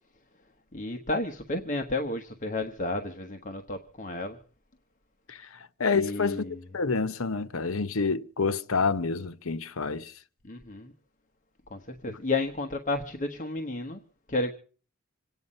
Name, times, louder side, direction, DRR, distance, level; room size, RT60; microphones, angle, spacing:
voice 1, 0.7-4.4 5.9-6.6 10.4-10.9 11.7-14.0 14.3-14.5, left 2 dB, 40° left, 1.2 m, -32 dB
voice 2, 5.8-6.5 6.7-10.1 12.1-12.2, left 4 dB, 75° left, 0.9 m, -28 dB
26.5 x 9.4 x 5.5 m
head